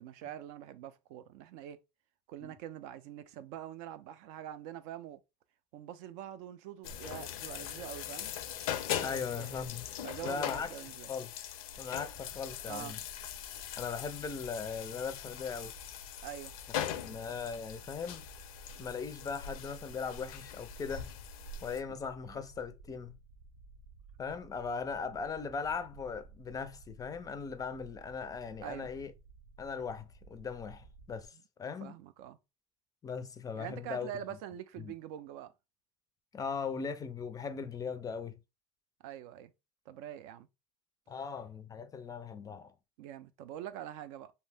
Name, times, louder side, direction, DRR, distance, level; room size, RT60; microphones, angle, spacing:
voice 1, 0.0-1.8 2.3-5.2 5.7-8.3 9.1-9.5 10.0-11.1 12.7-13.0 16.2-16.6 21.9-22.0 22.3-22.4 28.6-28.9 31.8-32.4 33.5-35.5 39.0-39.5 39.9-40.5 43.0-44.3, right 11 dB, 70° right, 0.4 m, -44 dB
sound 1, 6.8-21.8, left 9 dB, 90° left, 0.5 m, -41 dB
voice 2, 9.0-9.9 10.2-10.7 11.1-11.3 11.8-13.0 13.8-15.7 17.0-18.2 18.8-21.1 21.6-23.1 24.2-29.1 29.6-31.9 33.0-34.1 34.8-34.9 36.3-38.4 41.1-42.7, left 5 dB, 20° left, 0.3 m, -39 dB
sound 2, 11.7-31.3, right 4 dB, 90° right, 0.8 m, -56 dB
2.7 x 2.0 x 3.3 m
supercardioid pair, 115°, 17 cm